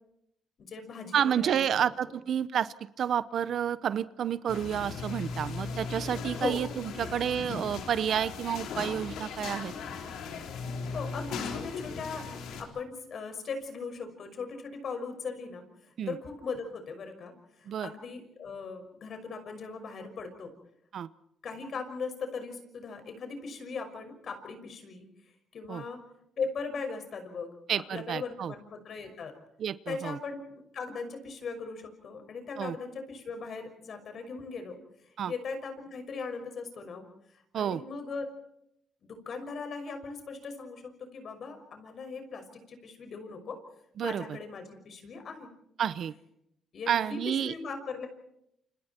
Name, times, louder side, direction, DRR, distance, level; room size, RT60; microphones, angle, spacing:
voice 1, 0.6-1.9 6.3-7.1 10.9-12.2 12.6-15.6 16.1-20.5 21.4-25.1 25.5-26.0 26.4-27.5 27.9-29.3 29.9-34.8 35.0-37.1 37.3-38.3 39.0-43.6 44.0-45.5 46.7-48.1, left 4 dB, 55° left, 7 dB, 5.9 m, -39 dB
voice 2, 1.1-9.7 16.0-16.2 17.7-17.9 20.9-21.1 25.7-25.8 27.7-28.5 29.6-30.2 32.6-32.8 35.2-35.3 37.5-37.8 44.0-44.2 45.8-46.1 46.9-47.5, right 9 dB, 65° right, 16 dB, 0.8 m, -30 dB
sound 1, 4.5-12.6, left 5 dB, 85° left, 4.0 m, -38 dB
29.0 x 27.0 x 4.5 m, 0.78 s
cardioid pair, 90°, 0 cm